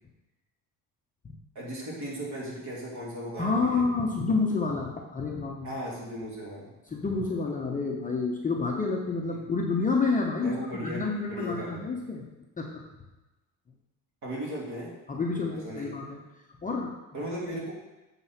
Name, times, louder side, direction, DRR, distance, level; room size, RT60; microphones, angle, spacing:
voice 1, 1.5-3.8 5.6-6.7 9.3-9.4 10.4-11.8 14.2-14.9 15.3-15.9 17.1-17.7, equal, 50° right, -4 dB, 2.7 m, -37 dB
voice 2, 3.4-5.7 6.9-12.3 12.6-12.8 15.1-16.2 16.6-16.9, left 4 dB, 20° left, 0 dB, 0.8 m, -29 dB
7.6 x 3.9 x 5.6 m, 1.1 s
cardioid pair, 135°, 37 cm